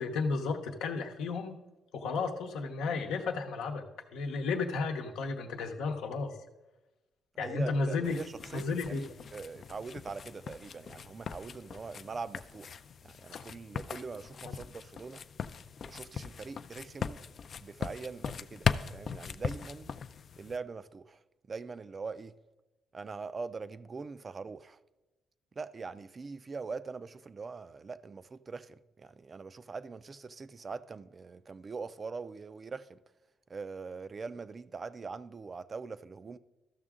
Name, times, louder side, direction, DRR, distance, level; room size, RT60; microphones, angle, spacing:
voice 1, 0.0-1.6 1.9-6.4 7.4-8.2 8.5-9.0 14.4-14.5, left 4 dB, 90° left, 0.9 m, -33 dB
voice 2, 7.3-9.1 9.3-15.2 15.9-17.2 17.6-19.9 20.4-21.2 21.5-22.4 22.9-24.8 25.6-33.0 33.5-36.4, right 4 dB, 35° right, 0.4 m, -42 dB
sound 1, 8.0-20.6, left 7 dB, 50° left, 0.3 m, -39 dB
13.5 x 6.1 x 3.6 m
cardioid pair, 90°, 0 cm